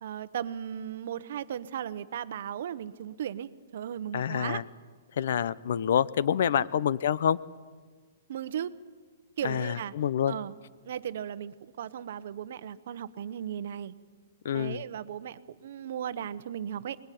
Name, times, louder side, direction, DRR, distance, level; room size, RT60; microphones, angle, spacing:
voice 1, 0.0-4.6 6.5-6.8 8.3-8.7 9.4-9.9 10.3-10.5 10.8-13.9 14.5-17.0, right 9 dB, 55° right, 15 dB, 1.0 m, -36 dB
voice 2, 4.1-4.6 5.2-7.4 9.4-10.4 14.4-14.8, left 9 dB, 60° left, 18 dB, 0.7 m, -27 dB
25.5 x 21.0 x 9.3 m, 1.5 s
hypercardioid pair, 170°, 0 cm